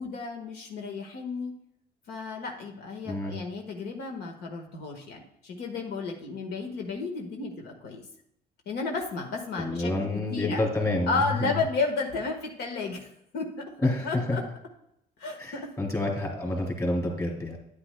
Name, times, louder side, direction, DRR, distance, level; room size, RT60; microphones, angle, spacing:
voice 1, 0.0-1.5 2.1-8.0 8.6-9.9 10.3-10.6 11.1-13.1 13.3-13.5 14.0-14.4 15.2-15.6, left 4 dB, 75° left, 2 dB, 1.5 m, -32 dB
voice 2, 3.0-3.4 9.6-11.5 13.8-14.4 15.4-17.6, left 2 dB, 20° left, 0 dB, 2.7 m, -28 dB
9.8 x 9.7 x 2.2 m, 0.79 s
cardioid pair, 110°, 17 cm